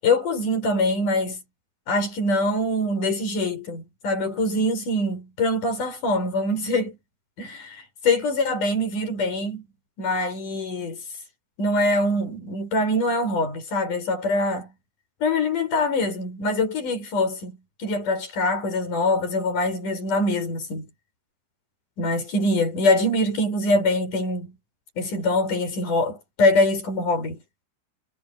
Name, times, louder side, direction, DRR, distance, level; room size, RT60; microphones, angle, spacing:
voice 1, 0.0-1.4 1.9-7.0 7.4-9.7 10.0-11.0 11.6-14.7 15.2-20.9 22.0-24.5 25.0-27.4, left 2 dB, 40° left, 8.6 m, -24 dB
omnidirectional pair, 5.7 m